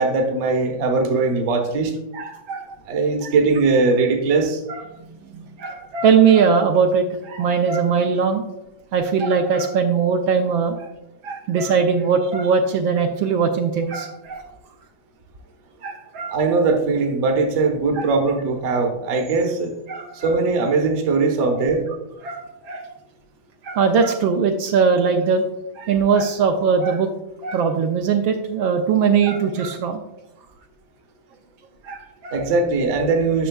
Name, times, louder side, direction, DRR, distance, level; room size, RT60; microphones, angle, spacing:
voice 1, 0.0-1.9 2.9-4.6 16.3-19.7 20.2-21.8 32.3-33.5, right 3 dB, 45° right, 2 dB, 1.0 m, -20 dB
voice 2, 2.1-2.7 3.2-3.3 4.7-4.8 5.3-8.4 8.9-10.9 11.2-14.4 15.8-16.4 18.0-18.1 19.9-20.3 22.2-22.9 23.6-25.4 25.8-27.1 27.4-30.0 31.8-32.4, right 6 dB, 75° right, 4 dB, 1.3 m, -20 dB
10.0 x 6.1 x 2.3 m, 0.90 s
omnidirectional pair, 2.4 m